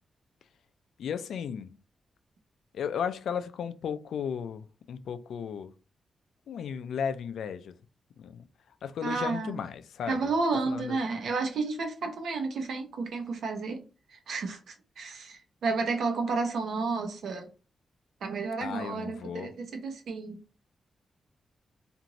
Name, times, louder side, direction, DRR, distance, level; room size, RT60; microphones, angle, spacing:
voice 1, 1.0-1.7 2.7-5.7 6.5-7.7 8.2-8.4 8.8-10.3 10.7-11.0 18.6-19.5, left 7 dB, 85° left, 0.3 m, -35 dB
voice 2, 9.0-9.6 10.1-13.8 14.1-17.5 18.2-20.4, right 4 dB, 75° right, 0.8 m, -31 dB
2.9 x 2.5 x 2.5 m
wide cardioid pair, 160°, 0 cm